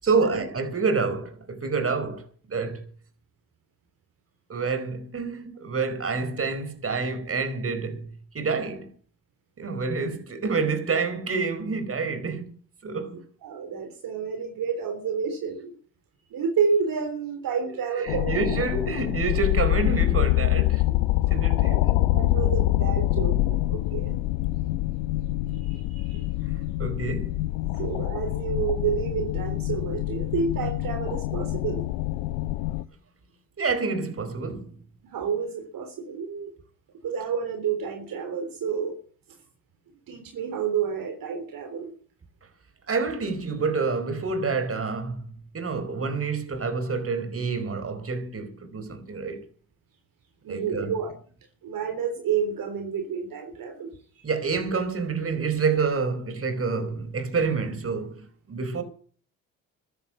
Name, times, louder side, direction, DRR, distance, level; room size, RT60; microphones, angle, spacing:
voice 1, 0.0-2.9 4.5-8.9 9.6-12.5 12.8-13.2 17.7-21.0 21.3-21.9 26.5-27.4 33.6-34.8 42.9-45.2 45.5-49.5 50.5-50.9 54.2-58.8, right 4 dB, 35° right, 4.5 m, -28 dB
voice 2, 13.4-15.8 16.3-18.3 21.7-21.9 22.1-24.2 25.7-26.3 27.8-31.8 35.1-36.5 37.0-39.0 40.1-41.9 50.4-51.1 51.6-53.9, right 6 dB, 60° right, 3.7 m, -29 dB
sound 1, 18.1-32.8, left 16 dB, 80° left, 0.8 m, -25 dB
15.0 x 10.5 x 8.6 m
hypercardioid pair, 60°, 39 cm